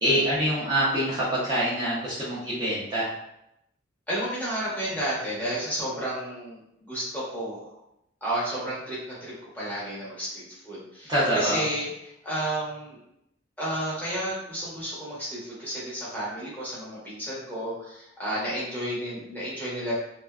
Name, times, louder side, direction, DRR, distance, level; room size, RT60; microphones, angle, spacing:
voice 1, 0.0-3.1 11.1-11.6, right 1 dB, 20° right, -9 dB, 0.6 m, -25 dB
voice 2, 4.1-7.7 8.2-11.9 12.2-13.0 13.6-19.9, right 1 dB, 10° left, -8 dB, 0.8 m, -32 dB
2.5 x 2.3 x 2.2 m, 0.80 s
head